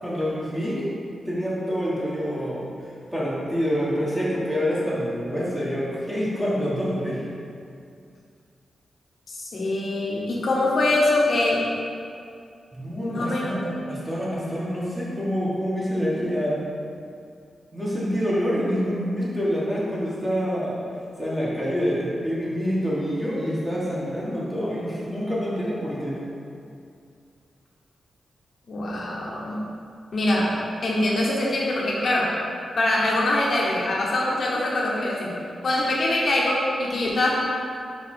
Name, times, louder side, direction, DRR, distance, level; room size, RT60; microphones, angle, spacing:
voice 1, 0.0-0.9 1.2-2.7 3.1-7.2 12.7-16.6 17.7-20.8 21.2-26.2, equal, 5° right, -8 dB, 1.6 m, -26 dB
voice 2, 9.3-11.7 13.0-13.5 28.7-29.6 30.1-30.5 30.8-32.3 32.8-35.3 35.6-37.3, left 1 dB, 50° left, -4 dB, 1.0 m, -23 dB
5.5 x 5.2 x 4.5 m, 2.4 s
wide cardioid pair, 150°, 0 cm